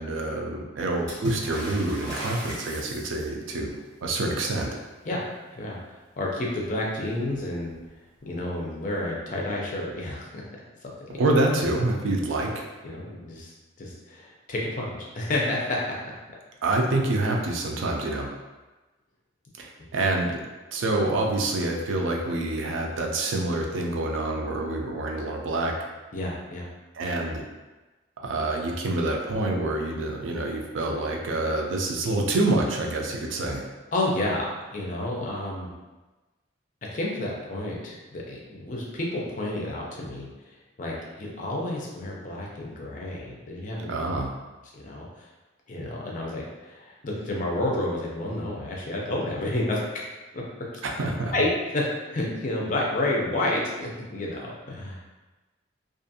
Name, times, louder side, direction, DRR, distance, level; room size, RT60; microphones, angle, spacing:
voice 1, 0.0-3.7 4.0-4.8 11.1-12.7 16.6-18.3 19.6-20.4 20.7-25.7 26.9-27.4 28.2-33.7 43.9-44.3 50.8-51.3, right 2 dB, 85° right, 1 dB, 0.4 m, -27 dB
Water / Splash splatter, 1.1-3.5 6.7-6.8 7.1-7.9 9.0-9.1, right 1 dB, 20° right, 1.2 m, -36 dB
voice 2, 6.2-7.7 8.2-10.4 12.8-15.8 26.1-26.7 33.9-35.7 36.9-43.9 44.7-45.3 45.7-50.0 50.3-50.7 51.3-55.1, left 1 dB, 40° left, -2 dB, 0.5 m, -30 dB
2.5 x 2.4 x 2.6 m, 1.2 s
head